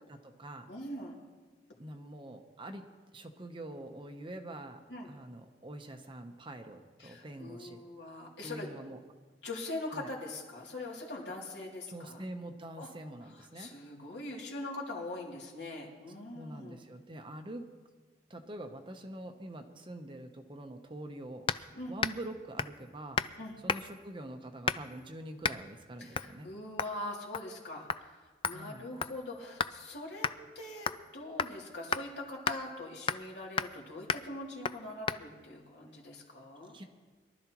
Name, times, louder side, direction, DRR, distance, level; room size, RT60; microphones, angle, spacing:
voice 1, 0.1-0.7 1.8-2.9 3.1-4.8 5.1-7.8 8.4-9.0 9.9-10.1 11.9-13.7 16.3-17.7 18.3-26.5 28.5-28.9 36.7-36.8, right 1 dB, 30° right, 5 dB, 0.9 m, -45 dB
voice 2, 0.7-1.1 4.9-5.1 7.0-8.7 9.4-12.2 12.7-12.9 13.2-16.8 21.7-21.9 23.4-23.6 26.0-30.3 30.5-36.8, left 2 dB, 70° left, -2 dB, 2.8 m, -42 dB
sound 1, 21.5-21.7 22.0-22.3 22.6-22.8 23.2-23.4 23.7-24.0 24.7-25.0 25.4-25.6 26.1-26.3 26.8-27.0 27.3-27.6 27.9-28.0 28.4-29.8 30.2-30.4 30.9-31.1 31.4-31.5 31.9-32.0 32.5-32.6 33.1-33.3 33.6-33.8 34.1-34.3 34.6-34.8 35.1-35.2, left 6 dB, 30° left, 0.3 m, -33 dB
22.5 x 12.0 x 3.0 m, 1.3 s
head